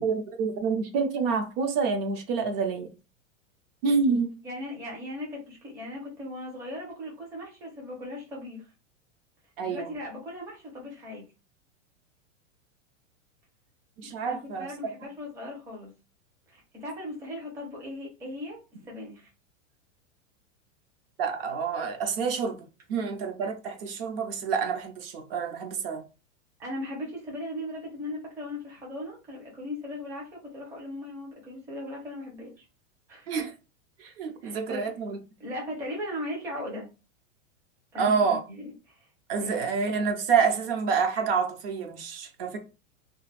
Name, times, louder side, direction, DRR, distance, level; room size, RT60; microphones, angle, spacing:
voice 1, 0.0-2.9 3.8-4.3 9.6-9.9 14.0-14.7 21.2-22.6 22.9-26.0 33.3-33.5 34.0-35.2 38.0-38.4 39.3-42.6, right 5 dB, 50° right, 0.7 m, -27 dB
voice 2, 4.4-8.7 9.6-11.3 14.0-15.9 16.5-19.3 26.6-32.7 33.1-33.3 34.4-34.9 35.4-36.9 37.9-39.1 39.4-39.6, left 1 dB, 10° right, 0.5 m, -38 dB
2.5 x 2.3 x 3.2 m
supercardioid pair, 155°, 38 cm